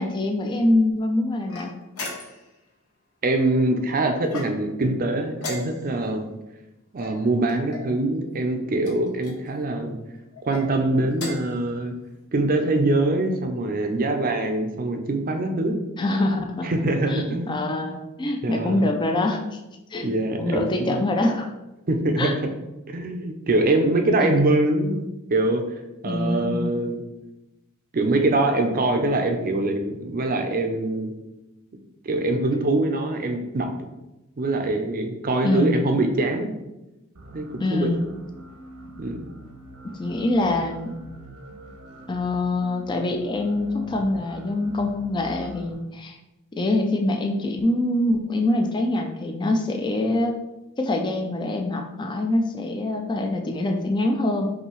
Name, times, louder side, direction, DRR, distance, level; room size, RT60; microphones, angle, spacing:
voice 1, 0.0-1.8 16.0-16.7 17.1-19.6 19.9-20.1 20.4-21.5 22.2-22.3 24.2-24.4 26.0-26.7 35.4-35.8 37.6-38.0 39.8-41.0 42.1-46.2 46.6-50.4 50.8-54.5, left 2 dB, 20° left, 4 dB, 0.4 m, -24 dB
sound 1, 1.5-2.6 4.2-4.8 5.4-6.1 7.0-7.9 8.8-9.4 10.3-10.7 11.1-11.6, left 2 dB, 80° left, 1.0 m, -36 dB
voice 2, 3.2-6.2 6.9-10.0 10.4-11.9 12.3-15.8 16.6-17.7 18.4-18.8 20.0-21.0 21.9-22.5 22.9-25.8 26.0-27.0 27.9-31.1 32.0-33.7 34.4-36.5 37.3-38.1 39.0-39.3, right 2 dB, 40° right, 5 dB, 0.5 m, -23 dB
sound 2, 37.1-45.7, equal, 85° right, 0.9 m, -44 dB
5.6 x 2.7 x 3.0 m, 0.98 s
head